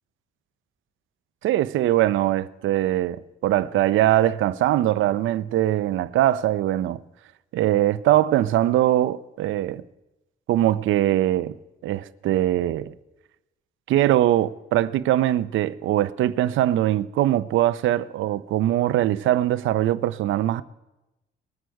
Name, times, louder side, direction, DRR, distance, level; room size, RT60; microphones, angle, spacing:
voice 1, 1.4-7.0 7.5-9.8 10.5-11.6 11.8-12.9 13.9-20.6, right 13 dB, 80° right, 0.6 m, -22 dB
21.0 x 7.7 x 4.7 m
cardioid pair, 90°, 20 cm